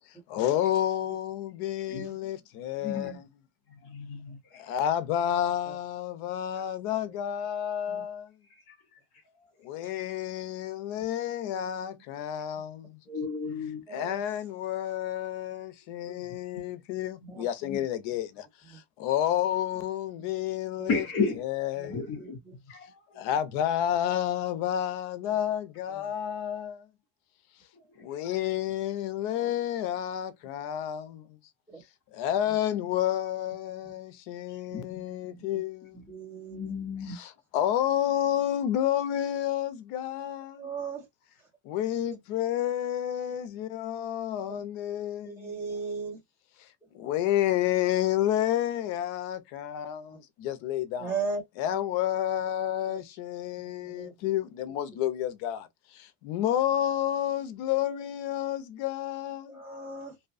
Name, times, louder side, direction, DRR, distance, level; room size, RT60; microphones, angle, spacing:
voice 1, 0.3-3.1 4.7-8.2 9.7-12.7 13.9-18.3 19.0-21.0 21.4-21.9 23.2-26.7 28.1-31.1 32.2-35.8 37.5-40.5 41.7-45.3 47.0-50.0 50.4-51.1 51.6-55.6 56.3-59.4, left 11 dB, 70° left, 0.6 m, -30 dB
voice 2, 2.8-3.2 3.7-4.6 6.6-6.7 8.5-9.0 13.1-13.8 16.1-16.5 17.2-17.3 17.6-17.8 20.9-21.4 21.9-23.2 27.7-28.4 34.6-35.4 35.9-36.1 36.5-37.2, left 4 dB, 30° left, 0.7 m, -35 dB
voice 3, 36.1-36.6 40.6-41.0 45.4-46.2 51.0-51.4 54.0-54.1 59.5-60.1, right 4 dB, 5° right, 1.2 m, -35 dB
2.7 x 2.2 x 2.4 m
cardioid pair, 175°, 49 cm